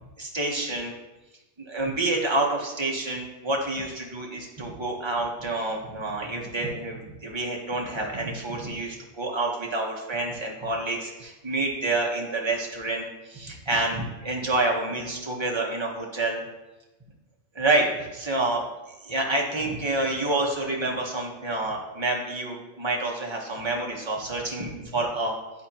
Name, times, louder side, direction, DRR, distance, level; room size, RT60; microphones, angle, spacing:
voice 1, 0.2-0.9 1.6-16.4 17.6-17.9 18.1-18.6 19.0-25.3, right 2 dB, 25° right, -1 dB, 1.1 m, -28 dB
10.5 x 4.3 x 2.9 m, 1.0 s
omnidirectional pair, 1.3 m